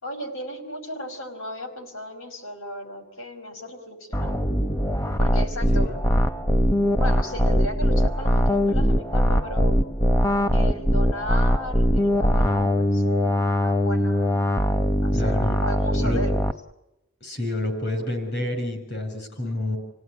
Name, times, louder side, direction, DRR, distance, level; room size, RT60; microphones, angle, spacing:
voice 1, 0.0-4.4 5.2-6.0 6.9-9.8 10.5-14.4 15.0-16.3, left 1 dB, 75° left, 5 dB, 4.9 m, -35 dB
sound 1, 4.1-16.5, equal, 15° left, 0.8 m, -21 dB
voice 2, 15.1-15.6 15.9-16.2 17.2-19.8, left 1 dB, 50° left, 6 dB, 6.5 m, -28 dB
29.0 x 17.5 x 9.8 m, 0.96 s
head